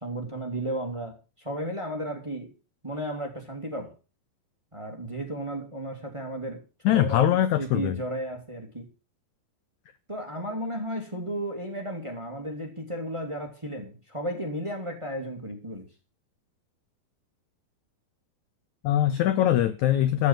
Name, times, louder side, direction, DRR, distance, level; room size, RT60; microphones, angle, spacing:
voice 1, 0.0-2.5 2.8-3.9 4.7-8.9 10.1-15.9, right 1 dB, 10° right, 2.0 m, -34 dB
voice 2, 6.9-8.0 18.8-20.3, left 12 dB, 80° left, 1.7 m, -22 dB
14.5 x 6.0 x 7.5 m
omnidirectional pair, 4.2 m